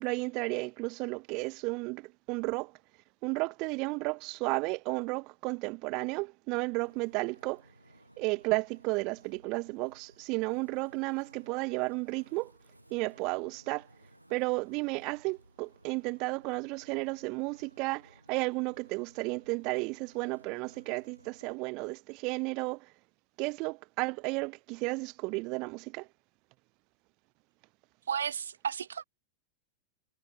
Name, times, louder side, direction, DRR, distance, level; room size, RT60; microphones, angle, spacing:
voice 1, 0.0-2.7 3.2-7.6 8.2-12.5 12.9-13.9 14.3-22.9 23.4-26.1, right 27 dB, 40° right, 1.2 m, -33 dB
Wind, 6.8-21.6, right 1 dB, 85° right, 7.1 m, -61 dB
voice 2, 28.1-29.0, right 7 dB, 70° right, 2.0 m, -33 dB
figure-of-eight pair, 90°, 0 cm